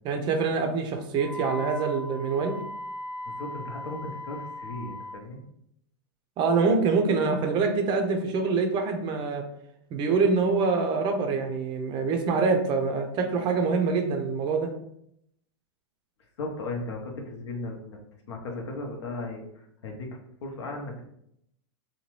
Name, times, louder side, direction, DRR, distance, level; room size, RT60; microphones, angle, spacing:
voice 1, 0.0-2.6 6.4-9.5 9.9-14.7, right 4 dB, 30° right, 5 dB, 0.4 m, -25 dB
Wind instrument woodwind instrument, 1.2-5.2, left 1 dB, 10° left, 0.8 m, -38 dB
voice 2, 3.2-5.4 16.4-18.0 18.3-20.1 20.4-21.1, left 2 dB, 80° left, 1 dB, 0.8 m, -36 dB
2.8 x 2.2 x 3.0 m, 0.75 s
hypercardioid pair, 130°, 14 cm